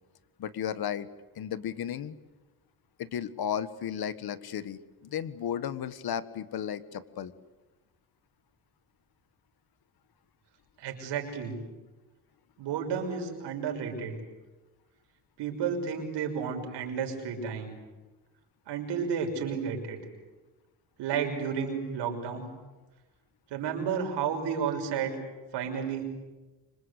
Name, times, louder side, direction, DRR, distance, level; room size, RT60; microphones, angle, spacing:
voice 1, 0.4-1.1 1.3-2.1 3.0-7.3, left 9 dB, 60° left, 14 dB, 1.6 m, -34 dB
voice 2, 10.8-11.6 12.6-14.2 15.4-17.7 18.7-20.0 21.0-22.5 23.5-25.1 25.5-26.0, right 6 dB, 90° right, 3 dB, 6.0 m, -32 dB
26.0 x 26.0 x 8.3 m, 1.2 s
cardioid pair, 105°, 41 cm